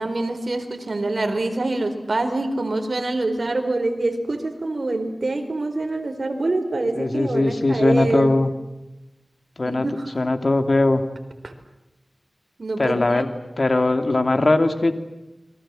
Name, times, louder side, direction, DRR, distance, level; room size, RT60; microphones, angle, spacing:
voice 1, 0.0-8.4 9.6-10.1 11.4-11.5 12.6-13.2, right 2 dB, 70° right, 6 dB, 4.4 m, -25 dB
voice 2, 6.9-8.5 9.6-9.9 10.1-11.0 12.8-13.3 13.6-14.9, left 2 dB, 60° left, 7 dB, 2.7 m, -20 dB
29.0 x 23.5 x 7.7 m, 0.99 s
wide cardioid pair, 55°, 0 cm